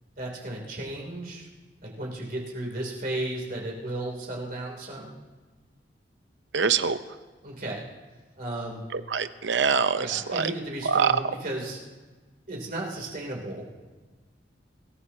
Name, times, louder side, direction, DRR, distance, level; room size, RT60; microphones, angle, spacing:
voice 1, 0.2-1.5 1.8-5.2 7.4-7.8 8.4-8.8 10.0-11.8 12.5-13.7, right 1 dB, 50° right, -1 dB, 2.9 m, -34 dB
voice 2, 6.5-7.0 8.9-10.5 10.8-11.2, right 6 dB, 75° right, 11 dB, 0.7 m, -24 dB
24.5 x 15.0 x 2.8 m, 1.3 s
head